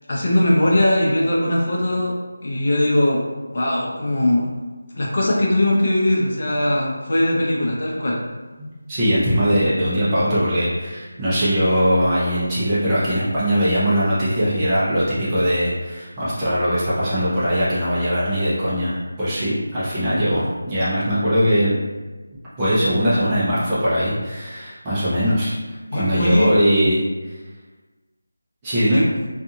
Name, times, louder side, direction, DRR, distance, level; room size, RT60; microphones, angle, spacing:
voice 1, 0.1-2.2 2.4-3.3 3.5-4.5 4.9-8.2 25.9-26.5 28.9-29.0, left 1 dB, 50° left, -4 dB, 0.6 m, -20 dB
voice 2, 8.9-21.8 22.6-25.5 25.9-27.0 28.6-29.0, equal, 15° right, -11 dB, 0.7 m, -20 dB
2.5 x 2.4 x 2.7 m, 1.2 s
figure-of-eight pair, 170°, 0 cm